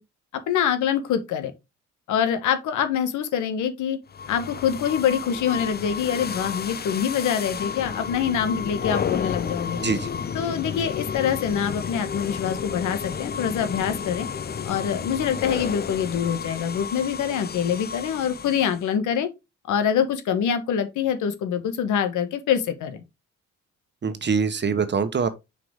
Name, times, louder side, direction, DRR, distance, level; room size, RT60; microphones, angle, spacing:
voice 1, 0.5-1.5 2.1-4.0 4.3-9.8 10.3-14.3 14.6-19.3 19.7-23.0, left 8 dB, 80° left, 1.4 m, -25 dB
sound 1, 4.1-18.9, left 7 dB, 35° left, 0.6 m, -32 dB
voice 2, 9.7-10.1 24.0-25.3, right 5 dB, 35° right, 1.2 m, -24 dB
6.3 x 5.0 x 3.6 m
cardioid pair, 90°, 30 cm